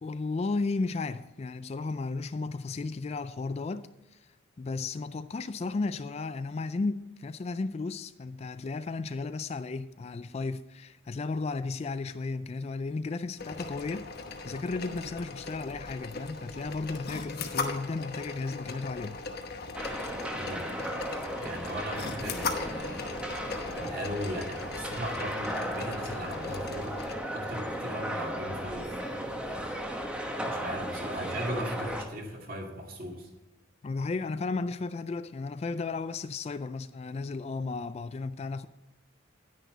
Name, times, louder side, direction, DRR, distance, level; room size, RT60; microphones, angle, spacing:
voice 1, 0.0-4.3 4.6-14.1 14.4-19.2 33.8-38.7, left 3 dB, 30° left, 0.3 m, -34 dB
sound 1, 13.4-27.1, left 4 dB, 50° left, 1.0 m, -39 dB
sound 2, 19.7-32.0, equal, 5° right, 1.1 m, -36 dB
voice 2, 20.3-20.7 21.4-23.3 23.7-27.0 27.3-29.7 30.4-33.3, equal, 45° right, 2.4 m, -38 dB
10.5 x 10.0 x 3.9 m
head